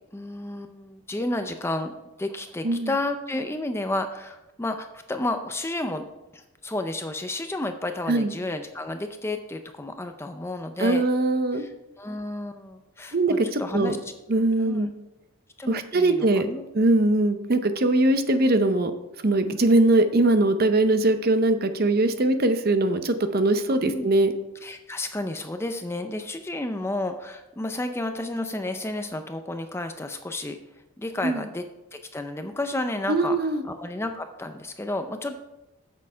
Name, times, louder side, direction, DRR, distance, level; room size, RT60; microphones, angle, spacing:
voice 1, 0.1-1.9 2.2-6.1 6.3-11.1 11.5-13.2 13.4-14.1 14.6-14.9 15.6-16.6 23.8-24.1 24.6-30.6 31.0-31.7 31.9-33.4 33.6-35.4, left 2 dB, 10° left, 7 dB, 0.4 m, -31 dB
voice 2, 10.8-11.6 13.1-14.0 14.3-14.9 15.7-16.5 16.7-18.9 19.2-24.3 31.2-31.4 33.1-33.6, right 2 dB, 45° right, 9 dB, 0.7 m, -21 dB
8.4 x 6.5 x 5.5 m, 0.97 s
head